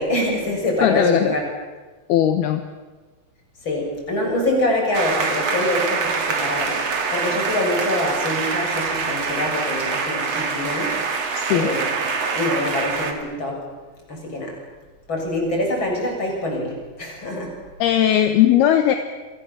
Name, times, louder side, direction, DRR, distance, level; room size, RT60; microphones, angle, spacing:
voice 1, 0.0-1.4 3.6-11.2 11.5-12.0 12.3-13.6 14.1-14.6 15.1-17.5, left 1 dB, 25° left, 0 dB, 7.9 m, -25 dB
voice 2, 0.8-1.3 2.1-2.6 11.3-11.7 17.8-19.0, left 11 dB, 70° left, 7 dB, 3.0 m, -18 dB
sound 1, 4.9-13.1, right 5 dB, 40° right, 3.1 m, -25 dB
30.0 x 24.5 x 7.5 m, 1.3 s
omnidirectional pair, 5.1 m